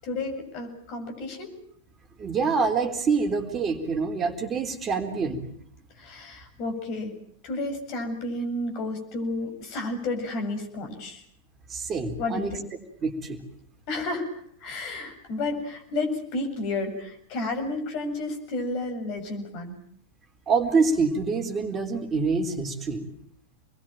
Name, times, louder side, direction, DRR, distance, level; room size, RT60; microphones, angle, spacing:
voice 1, 0.0-1.5 6.0-7.2 7.4-11.2 12.2-12.6 13.9-14.3 14.6-19.8, left 2 dB, 40° left, 6 dB, 7.4 m, -31 dB
voice 2, 2.2-5.5 11.7-12.5 13.0-13.4 20.5-23.1, right 4 dB, 25° right, 6 dB, 3.9 m, -26 dB
28.5 x 21.5 x 8.9 m, 0.63 s
figure-of-eight pair, 95°, 0 cm